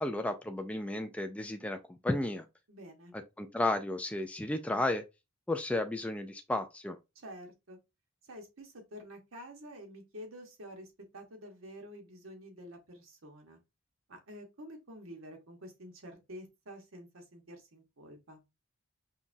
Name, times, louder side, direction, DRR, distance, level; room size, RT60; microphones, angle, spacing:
voice 1, 0.0-2.5 3.4-5.0 5.5-7.0, left 2 dB, 5° left, 0.3 m, -33 dB
voice 2, 2.7-3.1 7.1-7.8 8.2-13.6 14.1-18.4, equal, 80° right, 1.1 m, -49 dB
5.5 x 2.4 x 2.6 m
head